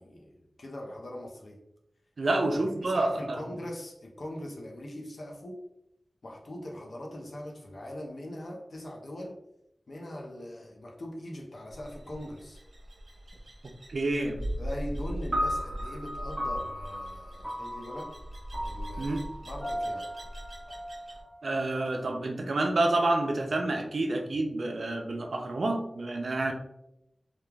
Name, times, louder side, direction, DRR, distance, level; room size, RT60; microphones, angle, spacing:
voice 1, 0.0-1.6 2.3-5.6 6.2-9.4 9.9-12.6 14.6-18.1 18.6-20.1, left 1 dB, 75° left, 0 dB, 0.6 m, -41 dB
voice 2, 2.2-3.4 13.9-14.4 19.0-19.3 21.4-26.5, right 2 dB, 80° right, 3 dB, 0.4 m, -28 dB
sound 1, 11.7-21.2, equal, 65° right, 0.8 m, -40 dB
sound 2, 15.3-21.8, equal, 35° right, 0.9 m, -36 dB
3.2 x 2.3 x 2.2 m, 0.83 s
wide cardioid pair, 60°, 0 cm